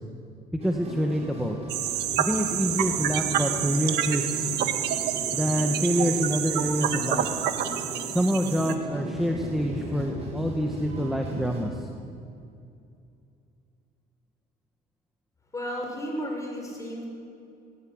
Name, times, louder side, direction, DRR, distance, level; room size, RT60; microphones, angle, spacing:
voice 1, 0.5-1.6 2.2-4.5 5.3-7.4 8.1-11.8, equal, ahead, 2 dB, 1.8 m, -26 dB
sound 1, 0.6-11.6, right 1 dB, 40° right, 7.6 m, -38 dB
sound 2, 1.7-8.7, right 10 dB, 75° right, 1.6 m, -28 dB
voice 2, 15.5-17.0, equal, 20° left, 0 dB, 7.0 m, -33 dB
18.5 x 17.0 x 9.9 m, 2.5 s
cardioid pair, 110°, 17 cm